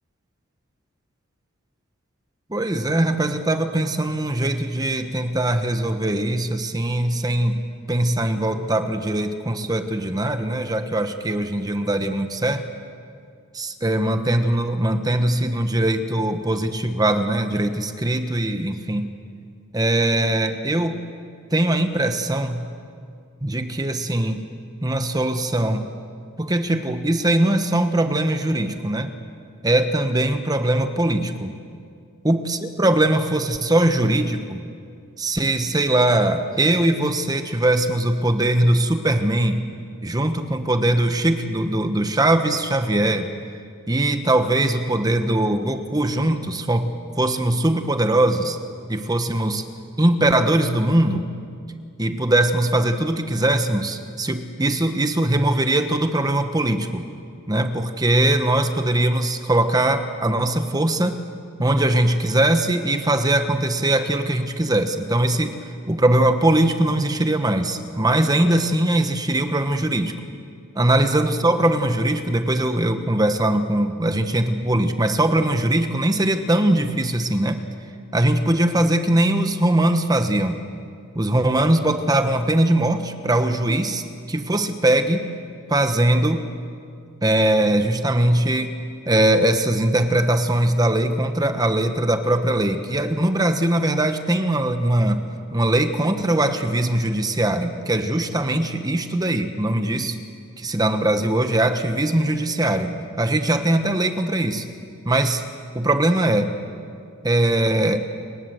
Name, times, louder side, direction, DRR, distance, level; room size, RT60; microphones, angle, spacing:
voice 1, 2.5-12.6 13.5-19.1 19.7-21.0 21.5-22.7 23.4-24.4 24.8-25.9 26.4-29.1 29.6-31.5 32.2-34.6 35.2-39.6 40.0-43.3 43.9-48.6 48.9-49.6 50.0-51.3 52.0-57.1 57.5-61.2 61.6-70.2 70.7-77.6 78.1-80.6 81.1-85.3 85.7-86.5 87.2-88.8 89.0-95.2 95.5-100.2 100.6-104.7 105.0-105.4 105.7-106.5 107.2-108.0, right 1 dB, 20° right, 8 dB, 1.1 m, -21 dB
29.5 x 19.5 x 7.9 m, 2.3 s
head